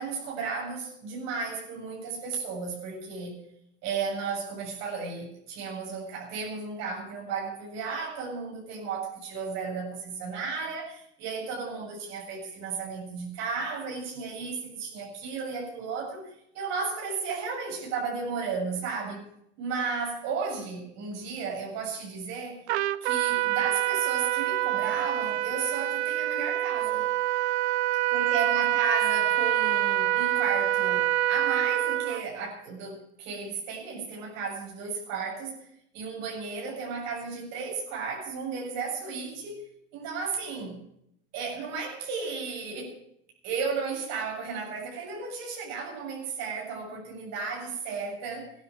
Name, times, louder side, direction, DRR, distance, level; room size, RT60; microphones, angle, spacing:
voice 1, 0.0-3.4 3.8-19.2 19.6-22.6 23.0-27.1 28.1-35.7 35.9-39.6 39.9-40.8 41.3-43.0 43.4-48.5, right 5 dB, 55° right, -1 dB, 7.4 m, -34 dB
Trumpet, 22.7-32.2, right 13 dB, 80° right, 1.0 m, -26 dB
16.0 x 12.0 x 6.3 m, 0.74 s
hypercardioid pair, 105°, 33 cm